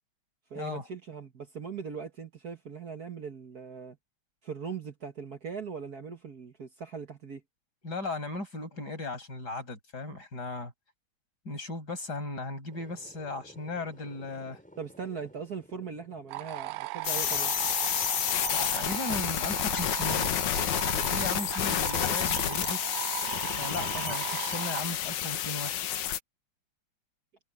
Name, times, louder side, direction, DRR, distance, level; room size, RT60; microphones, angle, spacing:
voice 1, 0.5-4.0 4.4-7.4 14.8-17.5, right 6 dB, 45° right, 1.3 m, -40 dB
voice 2, 7.8-10.7 11.5-14.6 18.5-20.4 21.1-23.0 23.6-25.8, left 2 dB, 30° left, 7.1 m, -37 dB
sound 1, 12.7-16.9, equal, ahead, 4.6 m, -55 dB
sound 2, 16.3-24.8, right 17 dB, 85° right, 2.1 m, -37 dB
sound 3, 17.0-26.2, left 11 dB, 80° left, 2.6 m, -30 dB
omnidirectional pair, 3.4 m